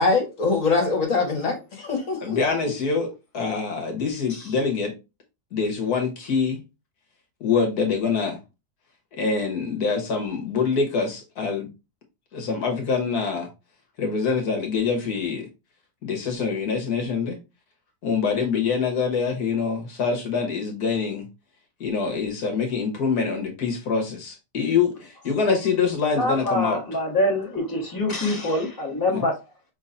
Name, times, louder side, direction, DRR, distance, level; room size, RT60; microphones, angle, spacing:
voice 1, 0.0-2.6, left 3 dB, 55° left, 1.6 m, -23 dB
voice 2, 2.2-4.9 5.5-6.6 7.4-8.4 9.1-11.7 12.3-13.5 14.0-15.5 16.0-17.4 18.0-21.2 21.8-26.8 29.1-29.3, left 5 dB, 70° left, 1.6 m, -25 dB
voice 3, 26.2-29.3, left 1 dB, 15° left, 1.4 m, -25 dB
5.4 x 3.6 x 2.5 m
omnidirectional pair, 1.7 m